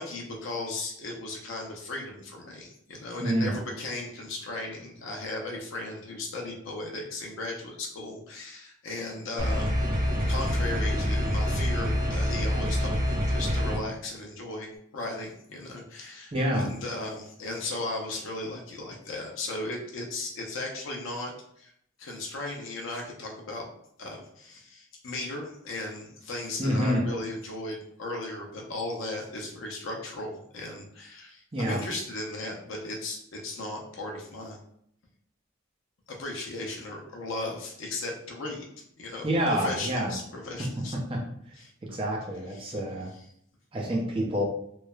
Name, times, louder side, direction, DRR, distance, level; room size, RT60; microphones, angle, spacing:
voice 1, 0.0-21.3 21.6-21.7 22.0-23.7 24.0-34.6 36.1-38.7 39.0-41.0 41.6-42.0 42.5-42.7, left 2 dB, 65° left, 0 dB, 0.5 m, -36 dB
voice 2, 3.2-3.5 16.3-16.7 26.6-27.0 31.5-31.8 39.2-40.2 40.9-41.2 41.9-43.1 43.7-44.4, equal, 25° right, -1 dB, 0.5 m, -27 dB
sound 1, 9.4-13.8, equal, 45° right, 0.8 m, -26 dB
3.0 x 2.0 x 2.3 m, 0.69 s
head